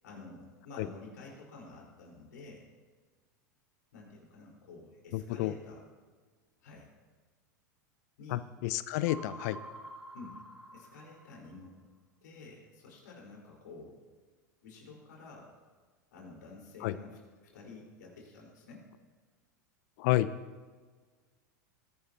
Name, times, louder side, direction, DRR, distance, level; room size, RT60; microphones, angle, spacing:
voice 1, 0.0-2.7 3.9-5.8 6.6-6.9 8.2-8.5 10.1-10.3 10.7-11.8 12.2-14.0 14.6-15.5 16.1-17.2 17.5-18.8, left 3 dB, 75° left, -2 dB, 4.6 m, -50 dB
voice 2, 5.1-5.5 8.3-9.6 16.8-16.9 20.0-20.3, left 15 dB, 60° left, 15 dB, 0.5 m, -30 dB
sound 1, 9.1-11.7, right 1 dB, 5° right, 3.8 m, -48 dB
20.5 x 11.0 x 2.9 m, 1.5 s
hypercardioid pair, 95°, 10 cm